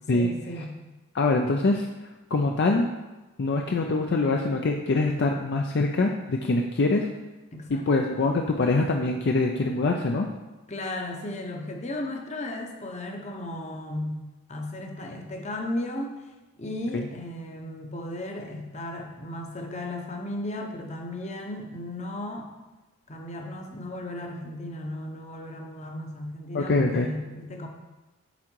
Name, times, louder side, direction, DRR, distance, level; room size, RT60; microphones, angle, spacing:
voice 1, 0.1-0.7 7.5-7.9 10.7-14.2 14.5-16.1 16.6-22.5 23.1-27.7, left 1 dB, 30° left, 2 dB, 0.8 m, -35 dB
voice 2, 1.1-1.9 2.3-2.9 3.4-7.1 7.7-10.3 16.9-17.1 26.5-27.1, left 3 dB, 55° left, 2 dB, 0.4 m, -24 dB
8.2 x 3.8 x 4.5 m, 1.1 s
head